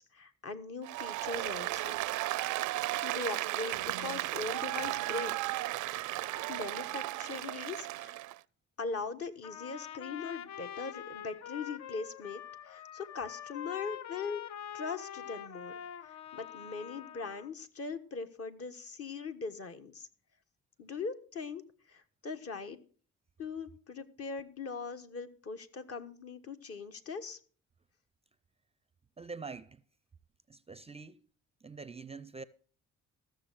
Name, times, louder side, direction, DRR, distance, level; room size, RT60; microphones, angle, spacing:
voice 1, 0.0-2.0 3.0-5.3 5.6-5.8 6.5-8.2 8.8-14.4 14.7-15.8 16.1-20.1 20.8-21.6 21.9-22.8 23.4-27.4, left 4 dB, 50° left, 1.4 m, -40 dB
Applause, 0.8-8.4, right 17 dB, 75° right, 0.5 m, -35 dB
Trumpet, 9.4-17.5, left 9 dB, 65° left, 0.7 m, -45 dB
voice 2, 29.2-29.8 30.5-31.2 31.6-32.4, right 4 dB, 20° right, 0.5 m, -45 dB
14.5 x 6.7 x 6.2 m
cardioid pair, 90°, 30 cm